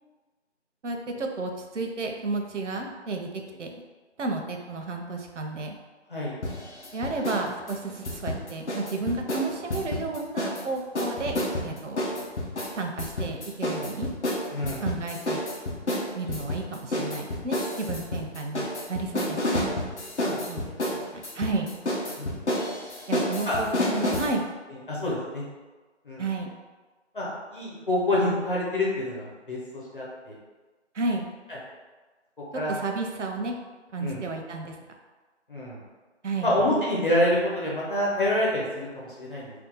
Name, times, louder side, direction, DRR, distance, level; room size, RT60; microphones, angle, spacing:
voice 1, 0.8-3.3 3.6-3.7 4.2-5.7 6.9-11.3 11.6-12.3 12.7-14.1 14.8-15.4 16.1-19.6 20.5-20.6 20.9-21.8 23.1-24.5 26.2-26.5 30.9-31.3 32.7-33.5 33.9-34.8 36.2-36.6, right 3 dB, 80° right, 3 dB, 0.6 m, -32 dB
sound 1, 6.4-7.4 7.7-10.6 10.9-24.3, left 1 dB, 70° left, 0.8 m, -29 dB
voice 2, 14.5-14.8 20.2-20.7 22.2-22.3 23.1-23.6 24.9-25.4 26.0-26.2 27.1-30.3 31.5-31.6 32.5-32.7 34.0-34.2 35.5-35.8 36.4-39.5, left 1 dB, 45° left, -7 dB, 1.0 m, -27 dB
2.7 x 2.2 x 3.8 m, 1.3 s
figure-of-eight pair, 180°, 36 cm